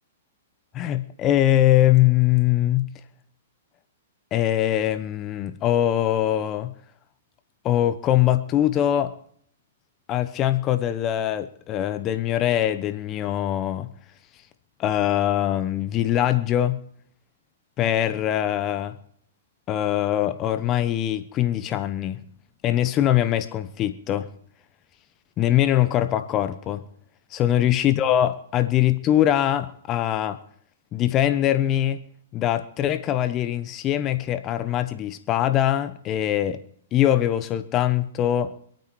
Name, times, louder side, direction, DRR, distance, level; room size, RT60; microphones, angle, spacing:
voice 1, 0.7-2.9 4.3-6.7 7.6-9.1 10.1-13.9 14.8-16.8 17.8-19.0 19.7-22.2 22.6-24.3 25.4-26.8 27.3-30.4 30.9-32.0 32.3-36.6 36.9-38.5, left 12 dB, 30° left, 1.0 m, -22 dB
25.5 x 9.0 x 4.7 m
hypercardioid pair, 125°, 0 cm